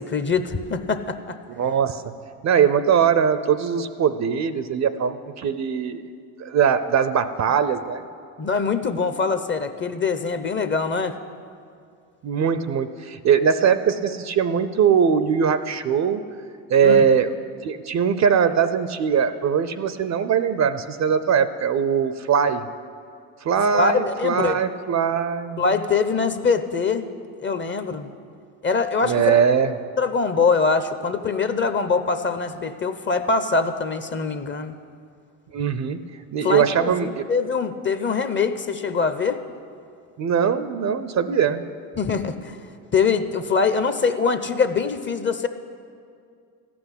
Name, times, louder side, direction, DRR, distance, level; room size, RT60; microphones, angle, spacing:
voice 1, 0.0-1.4 8.4-11.2 16.8-17.1 23.7-24.6 25.6-28.1 28.6-29.4 30.0-34.7 36.4-39.4 42.0-42.5 42.9-45.5, left 4 dB, 25° left, 9 dB, 0.7 m, -23 dB
voice 2, 1.6-2.0 2.4-6.0 6.4-8.0 12.2-16.2 16.7-17.3 17.6-22.6 23.4-25.7 29.0-29.7 35.5-36.1 36.3-37.2 40.2-41.6, right 7 dB, 35° right, 12 dB, 0.6 m, -21 dB
14.0 x 6.1 x 9.9 m, 2.3 s
hypercardioid pair, 80°, 47 cm